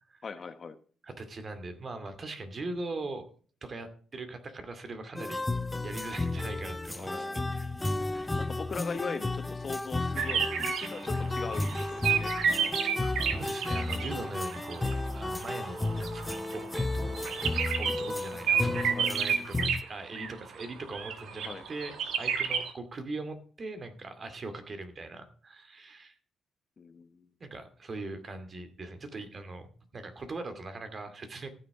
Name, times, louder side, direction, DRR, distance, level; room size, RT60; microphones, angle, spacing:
voice 1, 0.2-0.8 7.0-7.5 8.0-12.4 13.9-14.3 18.9-19.1 21.4-21.7 26.8-27.3, left 5 dB, 40° left, 10 dB, 1.1 m, -40 dB
voice 2, 1.0-3.3 3.6-5.5 5.8-8.5 13.3-21.9 22.2-26.2 27.4-31.5, right 2 dB, 40° right, 8 dB, 2.3 m, -41 dB
sound 1, 5.2-19.8, left 2 dB, 15° left, 0.4 m, -33 dB
sound 2, 10.2-14.2 14.5-19.8 20.1-20.7 20.9-22.7, right 7 dB, 75° right, 1.6 m, -31 dB
14.5 x 6.7 x 4.8 m, 0.42 s
cardioid pair, 90°, 0 cm